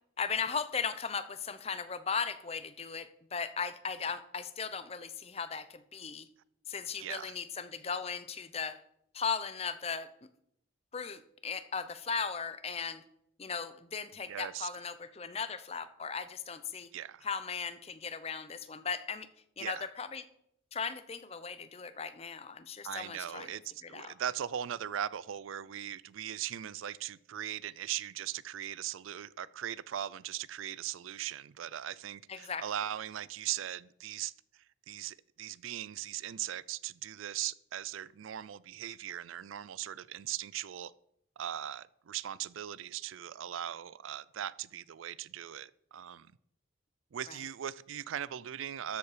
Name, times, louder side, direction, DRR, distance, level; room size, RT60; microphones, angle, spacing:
voice 1, 0.2-6.3 6.7-8.8 9.1-10.1 10.9-13.0 13.4-16.9 17.2-19.3 19.6-20.2 20.7-23.5 23.8-24.1 32.3-32.6 47.3-47.4, left 6 dB, 30° left, 0.6 m, -37 dB
voice 2, 7.0-7.4 14.3-14.7 16.9-17.3 19.6-19.9 22.8-40.9 41.4-46.3 47.1-49.0, right 10 dB, 80° right, 0.4 m, -39 dB
13.0 x 7.2 x 5.0 m
head